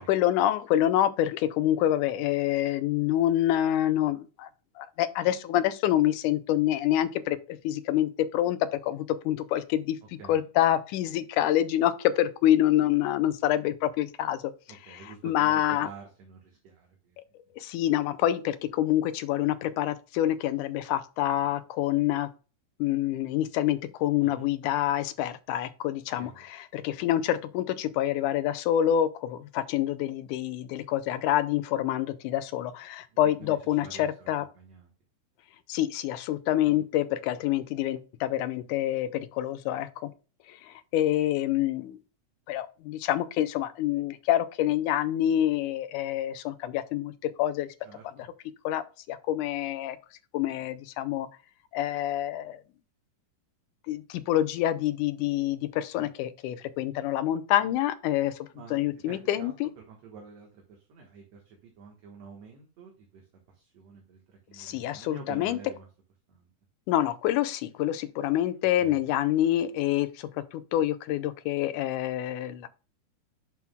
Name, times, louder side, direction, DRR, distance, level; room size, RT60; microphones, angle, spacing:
voice 1, 0.0-4.5 4.8-8.6 8.8-10.0 10.3-14.4 14.9-15.9 17.6-22.3 22.8-34.5 35.7-40.1 40.5-42.0 42.5-47.1 47.4-47.7 48.6-48.8 49.1-50.0 50.3-51.3 51.7-52.6 53.9-59.7 64.6-65.6 66.9-72.7, left 12 dB, 80° left, 2.1 m, -27 dB
voice 2, 14.7-17.2 24.2-24.5 26.2-26.4 26.9-27.0 33.1-33.5 33.8-34.3 34.6-34.9 36.6-36.8 47.8-48.2 55.9-56.1 58.5-65.9 66.3-66.5 68.8-69.0, right 5 dB, 60° right, 2.3 m, -48 dB
9.2 x 6.1 x 2.3 m
omnidirectional pair, 3.7 m